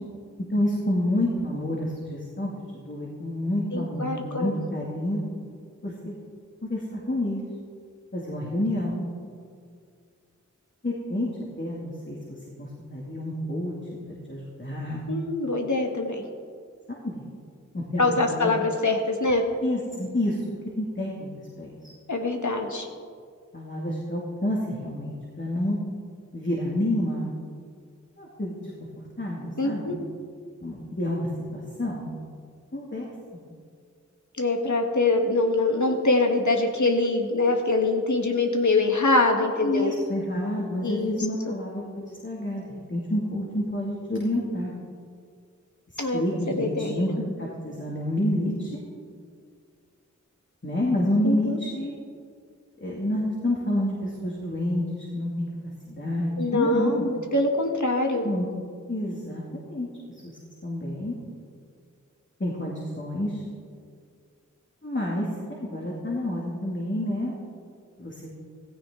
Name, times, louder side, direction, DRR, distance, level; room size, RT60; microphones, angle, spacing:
voice 1, 0.5-5.2 5.8-6.1 6.6-7.4 8.1-9.0 10.8-11.3 11.6-15.0 16.9-17.2 17.7-18.5 19.6-20.4 20.8-21.7 23.5-25.8 26.3-27.3 28.2-28.6 29.2-30.0 30.6-32.0 32.7-33.1 39.6-44.7 46.1-48.8 50.6-51.9 52.8-55.5 55.9-57.1 58.2-58.5 58.9-59.9 60.2-60.4 60.6-61.2 62.4-63.4 64.8-67.4 68.0-68.3, left 1 dB, 40° left, -4 dB, 2.5 m, -29 dB
voice 2, 3.7-4.5 15.1-16.2 18.0-19.4 22.1-22.9 29.6-30.0 34.4-39.9 40.8-41.2 41.4-41.5 46.0-47.0 51.2-51.6 56.4-58.2, left 2 dB, 70° left, 2 dB, 1.6 m, -24 dB
16.0 x 15.0 x 3.8 m, 2.1 s
wide cardioid pair, 40°, 31 cm